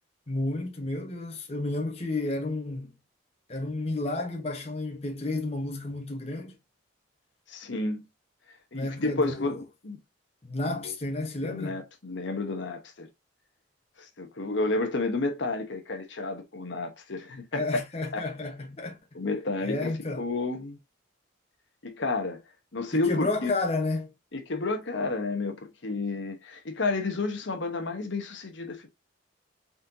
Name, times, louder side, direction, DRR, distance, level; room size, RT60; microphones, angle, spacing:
voice 1, 0.3-3.0 3.5-6.5 8.7-9.6 10.4-11.8 17.5-19.0 19.6-20.3 22.9-24.1, left 2 dB, 30° left, 1.0 m, -31 dB
voice 2, 7.5-8.0 8.7-10.0 10.8-10.9 11.4-13.1 14.0-17.7 18.1-18.2 19.1-20.8 21.8-22.4 22.7-23.5 24.3-25.6 25.8-28.9, left 3 dB, 65° left, 1.0 m, -31 dB
4.2 x 3.8 x 2.6 m
head